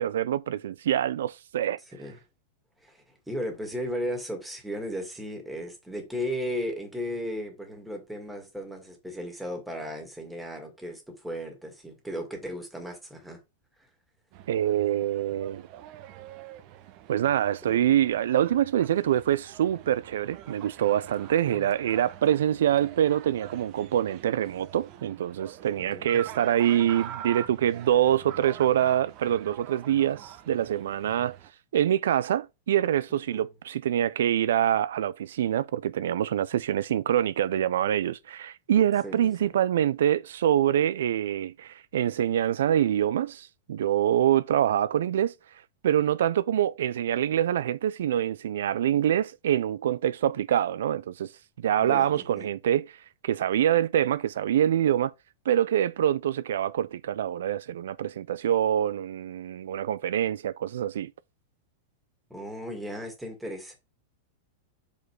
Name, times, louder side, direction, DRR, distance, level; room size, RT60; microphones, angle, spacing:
voice 1, 0.0-1.8 14.5-15.6 17.1-31.4 31.7-45.3 45.8-51.3 51.6-53.0 53.2-55.1 55.5-61.1, right 10 dB, 85° right, 0.3 m, -25 dB
voice 2, 2.8-13.4 17.7-17.8 21.5-21.6 25.8-26.1 33.3-33.4 39.0-39.5 51.8-52.5 62.3-63.8, equal, 5° right, 2.0 m, -35 dB
sound 1, 14.3-31.5, right 11 dB, 45° right, 0.8 m, -45 dB
6.2 x 5.2 x 4.6 m
supercardioid pair, 145°, 0 cm